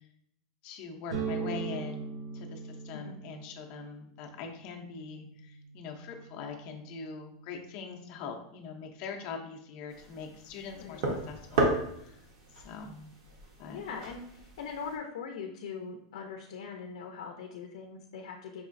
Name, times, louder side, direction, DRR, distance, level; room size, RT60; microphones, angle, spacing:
voice 1, 0.6-12.2 12.6-13.1 13.6-13.8, left 5 dB, 35° left, 2 dB, 0.6 m, -43 dB
sound 1, 1.1-8.7, right 5 dB, 85° right, 0.7 m, -41 dB
sound 2, 9.9-15.0, right 2 dB, 45° right, 0.9 m, -34 dB
voice 2, 13.7-18.7, left 6 dB, 80° left, 3 dB, 0.5 m, -41 dB
5.4 x 3.0 x 2.5 m, 0.71 s
supercardioid pair, 175°, 3 cm